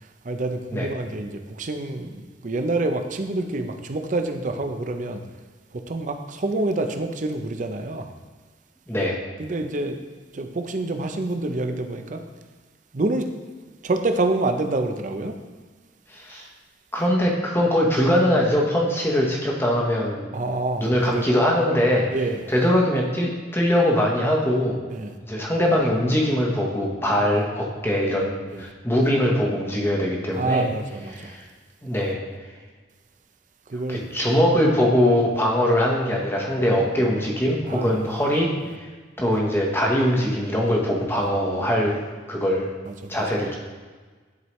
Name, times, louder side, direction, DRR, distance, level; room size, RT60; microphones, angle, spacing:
voice 1, 0.2-5.2 5.7-8.1 9.4-10.0 10.3-12.2 12.9-13.3 13.8-15.4 20.3-21.3 22.1-22.4 24.9-25.1 27.2-27.4 28.5-28.7 30.3-31.3 33.7-34.0 37.7-38.0 42.9-43.2, right 2 dB, 45° right, 6 dB, 0.6 m, -27 dB
voice 2, 8.9-9.2 16.1-16.5 16.9-20.3 20.8-22.1 22.5-24.8 25.2-30.6 31.1-31.4 31.8-32.2 33.9-38.9 39.2-42.0 42.3-42.7 43.1-43.5, equal, 15° left, -2 dB, 1.1 m, -22 dB
11.0 x 4.6 x 3.1 m, 1.4 s
head